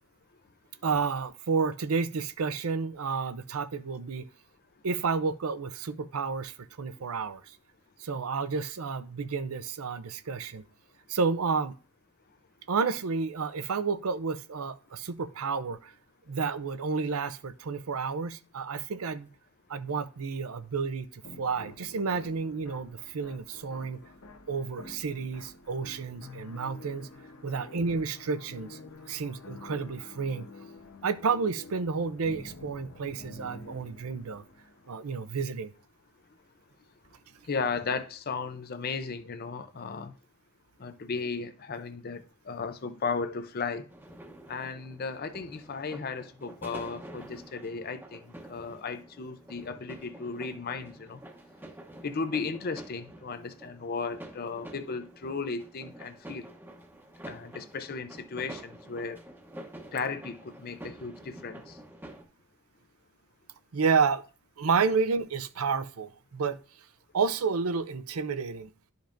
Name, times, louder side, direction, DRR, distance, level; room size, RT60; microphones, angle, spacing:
voice 1, 0.8-4.3 4.8-7.6 8.0-10.6 11.1-11.7 12.7-15.9 16.3-19.3 19.7-24.0 24.5-27.1 27.4-28.8 29.1-30.5 31.0-34.4 34.9-35.7 63.7-64.2 64.6-66.6 67.1-68.7, right 5 dB, 75° right, 0.6 m, -30 dB
sound 1, 21.2-34.9, left 3 dB, 70° left, 0.9 m, -49 dB
voice 2, 37.4-40.1 40.8-43.9 44.5-51.2 52.0-56.5 57.2-59.2 59.9-61.8, left 4 dB, 45° left, 0.6 m, -35 dB
sound 2, 43.9-62.2, right 1 dB, 10° right, 0.9 m, -48 dB
11.5 x 5.2 x 2.6 m
head